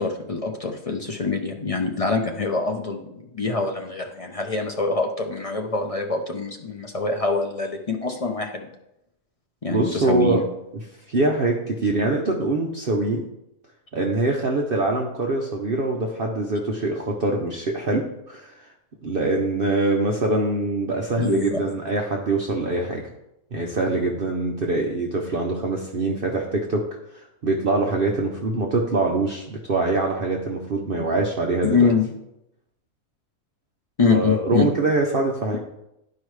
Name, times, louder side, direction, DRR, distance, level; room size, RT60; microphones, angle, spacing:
voice 1, 0.0-8.7 9.6-10.4 21.2-21.6 31.6-32.1 34.0-34.7, left 4 dB, 45° left, 2 dB, 0.4 m, -24 dB
voice 2, 9.7-10.4 11.1-13.2 13.9-18.7 19.0-23.1 23.5-26.8 27.1-31.9 34.1-35.6, right 2 dB, 50° right, 0 dB, 0.8 m, -24 dB
11.5 x 4.9 x 3.2 m, 0.84 s
omnidirectional pair, 1.5 m